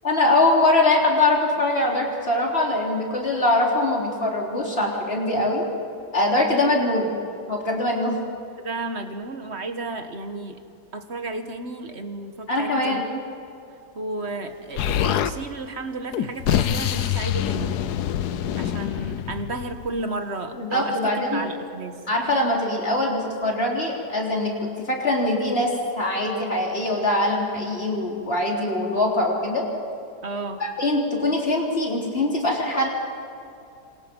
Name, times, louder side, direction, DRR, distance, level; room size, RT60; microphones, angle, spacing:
voice 1, 0.0-5.6 6.1-7.1 7.5-8.2 12.5-13.0 20.6-21.4 22.1-29.6 30.6-32.9, left 2 dB, 35° left, -2 dB, 4.3 m, -22 dB
voice 2, 8.6-10.6 10.9-13.2 13.9-17.8 18.6-22.0 30.2-30.6, right 2 dB, 40° right, 7 dB, 1.7 m, -33 dB
Explosion, 14.8-15.3 16.1-20.0, left 10 dB, 70° left, 1.3 m, -25 dB
28.5 x 26.5 x 5.5 m, 2.6 s
omnidirectional pair, 1.8 m